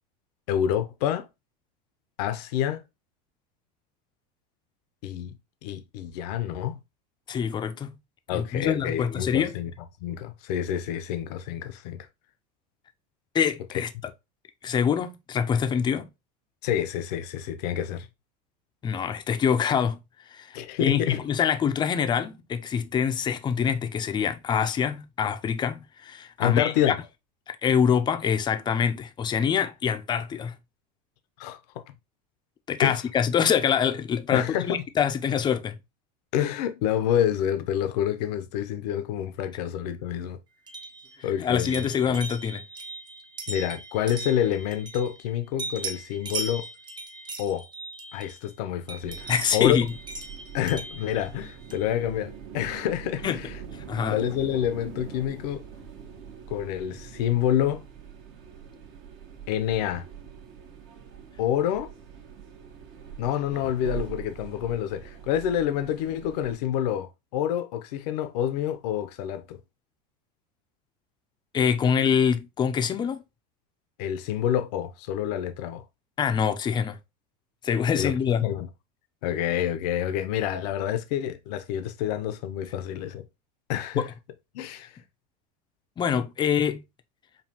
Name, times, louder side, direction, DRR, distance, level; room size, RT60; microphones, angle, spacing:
voice 1, 0.5-1.3 2.2-2.8 5.0-5.3 5.6-6.8 8.3-9.7 10.0-12.1 16.6-18.1 20.5-21.2 26.4-27.0 31.4-31.9 32.8-33.0 34.3-34.8 36.3-40.4 41.2-42.2 43.5-46.7 47.4-47.6 48.1-49.8 50.5-53.5 54.1-55.6 56.5-57.8 59.5-60.1 61.4-61.9 63.2-69.6 74.0-75.8 78.0-78.1 78.4-78.7 79.2-83.2 83.7-84.1 84.5-85.0, left 10 dB, 75° left, 0.7 m, -28 dB
voice 2, 7.3-7.9 8.3-9.5 13.3-13.9 14.6-16.1 18.8-20.0 20.3-26.9 27.5-30.6 32.7-35.8 41.4-42.6 49.3-49.9 53.2-53.4 53.9-54.2 71.5-73.2 76.2-77.0 77.6-78.4 84.0-84.1 86.0-86.8, left 7 dB, 20° left, 0.5 m, -25 dB
sound 1, 40.7-45.3 45.6-48.5 48.9-51.9, right 3 dB, 20° right, 0.6 m, -38 dB
sound 2, 49.0-66.6, right 7 dB, 55° right, 1.2 m, -43 dB
5.3 x 2.3 x 2.8 m
supercardioid pair, 125°, 21 cm